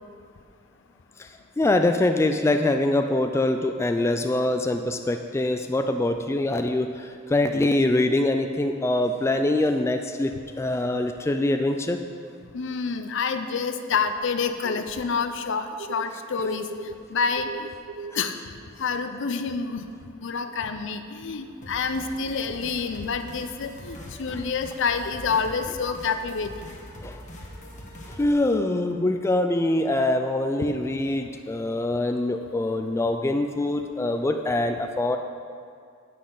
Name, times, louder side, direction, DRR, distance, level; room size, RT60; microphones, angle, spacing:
voice 1, 1.6-10.3 10.6-12.0 24.3-24.4 27.0-27.2 28.0-35.2, left 2 dB, 15° left, 6 dB, 0.3 m, -24 dB
voice 2, 12.5-16.7 17.1-17.7 18.2-18.3 18.8-19.9 20.2-26.5, left 5 dB, 65° left, 9 dB, 0.6 m, -28 dB
sound 1, 15.8-17.1 17.4-18.3 19.8-19.9 20.5-20.7, right 4 dB, 50° right, 0.5 m, -38 dB
sound 2, 21.6-28.3, equal, 40° left, 1.2 m, -43 dB
10.0 x 8.5 x 3.9 m, 2.3 s
head